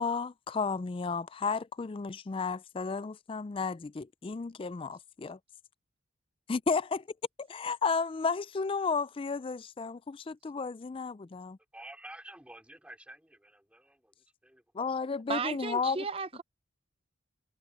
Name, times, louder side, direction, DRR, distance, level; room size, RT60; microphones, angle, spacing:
voice 1, 0.0-5.4 6.5-7.0 7.4-11.6 14.7-16.0, left 4 dB, 25° left, 0.3 m, -33 dB
voice 2, 11.7-14.6 15.1-15.2, right 1 dB, 5° right, 4.2 m, -50 dB
voice 3, 15.3-16.4, right 4 dB, 25° right, 0.7 m, -34 dB
head